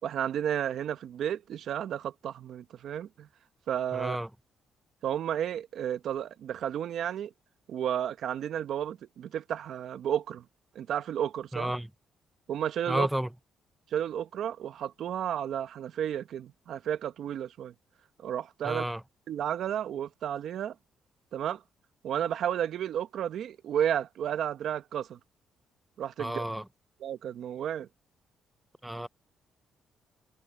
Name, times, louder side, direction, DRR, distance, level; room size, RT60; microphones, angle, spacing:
voice 1, 0.0-3.3 3.7-4.2 5.0-7.3 7.7-10.4 10.7-11.7 12.5-13.1 13.9-17.7 18.2-18.8 19.3-20.7 21.3-21.6 22.0-25.2 26.0-26.4 27.0-27.9, right 10 dB, 70° right, 1.1 m, -32 dB
voice 2, 3.9-4.3 11.5-11.9 12.9-13.3 18.6-19.0 26.2-26.6 28.8-29.1, right 1 dB, 5° right, 0.4 m, -31 dB
cardioid pair, 90°, 0 cm